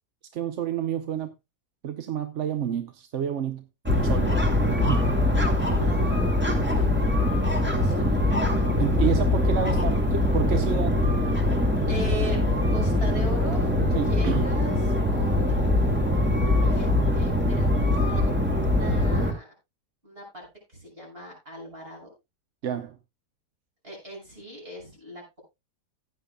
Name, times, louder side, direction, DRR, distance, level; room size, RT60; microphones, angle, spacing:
voice 1, 0.3-1.3 1.8-3.6 4.0-4.4 4.8-5.1 8.8-11.0 13.9-14.5 22.6-23.0, right 9 dB, 55° right, 0.9 m, -29 dB
sound 1, 3.8-19.3, left 1 dB, 5° right, 2.1 m, -23 dB
voice 2, 5.8-8.3 11.9-12.4 12.7-13.7 14.0-14.8 15.1-15.8 16.2-19.5 20.0-22.1 23.8-25.4, right 1 dB, 35° right, 6.3 m, -40 dB
15.5 x 9.8 x 2.2 m
omnidirectional pair, 1.8 m